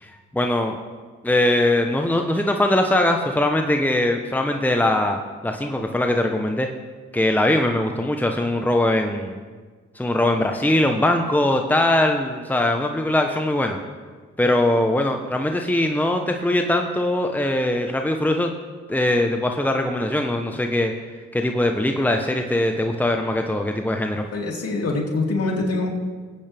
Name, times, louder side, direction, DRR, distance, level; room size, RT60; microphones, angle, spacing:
voice 1, 0.0-0.8 1.2-6.7 7.1-9.4 9.9-13.8 14.4-18.5 18.9-20.9 21.3-24.2, left 1 dB, 5° left, 4 dB, 1.1 m, -21 dB
voice 2, 24.3-25.9, left 2 dB, 55° left, -1 dB, 3.3 m, -24 dB
21.0 x 8.7 x 3.5 m, 1.5 s
hypercardioid pair, 40°, 29 cm